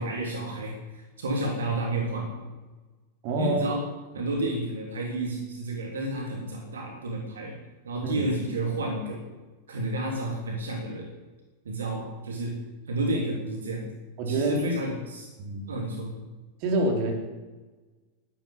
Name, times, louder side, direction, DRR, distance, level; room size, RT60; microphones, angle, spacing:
voice 1, 0.0-2.4 3.4-3.9 4.1-7.5 7.8-9.2 9.7-11.1 11.6-12.6 12.9-13.8 14.3-15.3 15.7-16.2, right 1 dB, 65° right, 0 dB, 3.3 m, -31 dB
voice 2, 3.2-3.7 8.0-8.1 14.2-14.7 15.4-15.7 16.6-17.1, right 2 dB, 45° right, 1 dB, 4.0 m, -26 dB
12.5 x 12.5 x 8.8 m, 1.2 s
figure-of-eight pair, 90°, 0 cm